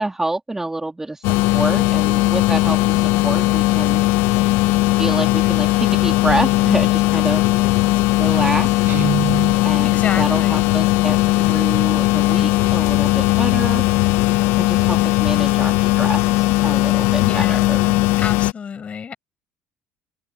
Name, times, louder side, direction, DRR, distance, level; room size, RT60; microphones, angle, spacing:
voice 1, 0.0-4.0 5.0-7.6 8.2-8.9 9.6-13.8 14.6-17.9, right 2 dB, 10° right, 2.6 m, -27 dB
sound 1, 1.2-18.5, left 19 dB, 80° left, 0.6 m, -18 dB
Guitar, 8.9-9.7, right 9 dB, 50° right, 4.4 m, -25 dB
voice 2, 9.8-10.7 17.2-17.7 18.2-19.1, left 6 dB, 40° left, 7.5 m, -29 dB
open air
supercardioid pair, 90°, 4 cm